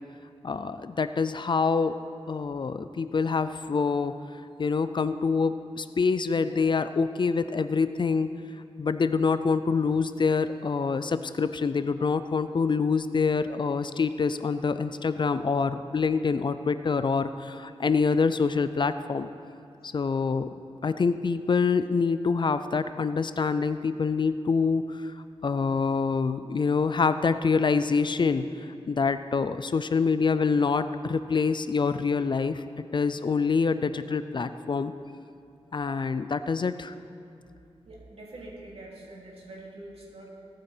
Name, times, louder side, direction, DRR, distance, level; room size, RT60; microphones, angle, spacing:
voice 1, 0.4-2.0 2.3-4.1 4.6-8.3 8.8-19.3 19.8-20.5 20.8-25.1 25.4-32.6 32.9-34.9 35.7-36.9, left 5 dB, 45° left, 12 dB, 0.4 m, -26 dB
voice 2, 37.8-40.3, right 1 dB, 65° right, -4 dB, 3.2 m, -44 dB
18.0 x 8.9 x 4.4 m, 2.5 s
wide cardioid pair, 130°, 11 cm